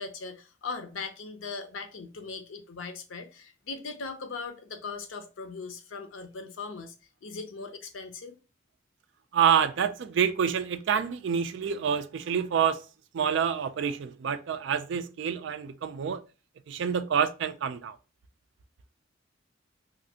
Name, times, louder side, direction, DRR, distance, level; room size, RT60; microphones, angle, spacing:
voice 1, 0.0-6.9 7.2-8.4, left 4 dB, 90° left, 0.6 m, -39 dB
voice 2, 9.3-12.8 13.1-16.2 16.7-18.0, right 7 dB, 65° right, 0.3 m, -27 dB
3.1 x 2.5 x 2.7 m
head